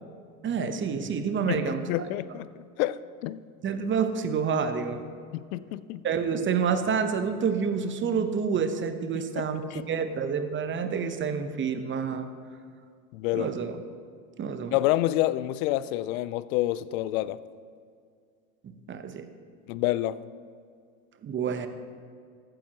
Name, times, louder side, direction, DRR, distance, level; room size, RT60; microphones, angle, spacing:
voice 1, 0.4-1.8 3.6-5.0 6.0-9.6 9.9-12.3 13.3-13.8 14.4-14.7 18.9-19.3 21.2-21.7, right 6 dB, 25° right, 8 dB, 0.9 m, -28 dB
voice 2, 1.5-2.5 2.8-3.4 5.3-6.0 9.4-9.8 13.1-13.5 14.7-17.4 19.7-20.2, left 15 dB, 70° left, 17 dB, 0.5 m, -28 dB
14.5 x 8.8 x 2.9 m, 2.2 s
hypercardioid pair, 95°, 43 cm